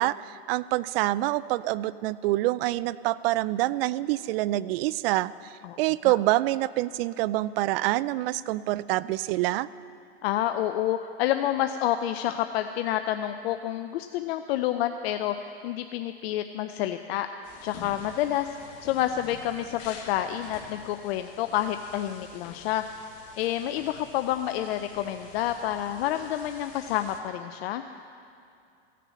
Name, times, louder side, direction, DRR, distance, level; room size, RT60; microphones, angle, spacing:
voice 1, 0.0-9.7, right 17 dB, 65° right, 18 dB, 0.5 m, -26 dB
voice 2, 10.2-17.3 17.6-18.6 18.8-22.8 23.4-27.8, left 12 dB, 70° left, 8 dB, 0.6 m, -29 dB
sound 1, 17.4-27.2, left 5 dB, 50° left, 1.8 m, -48 dB
16.0 x 6.7 x 7.5 m, 2.5 s
hypercardioid pair, 110°, 32 cm